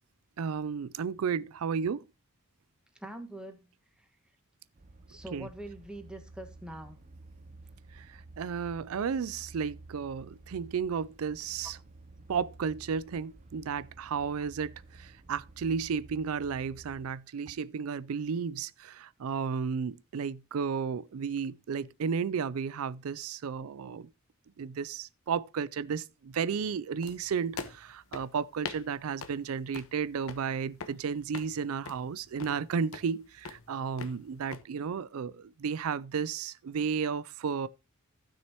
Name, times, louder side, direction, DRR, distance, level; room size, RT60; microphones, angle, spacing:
voice 1, 0.4-2.1 5.3-5.5 7.9-11.8 12.3-24.1 24.6-37.7, right 6 dB, 80° right, 0.4 m, -33 dB
voice 2, 3.0-3.6 4.0-4.1 5.1-7.0, right 1 dB, 5° right, 1.5 m, -43 dB
sound 1, 4.8-17.1, right 2 dB, 35° right, 0.7 m, -52 dB
sound 2, 27.0-34.6, left 4 dB, 75° left, 1.1 m, -45 dB
15.5 x 6.3 x 2.9 m
head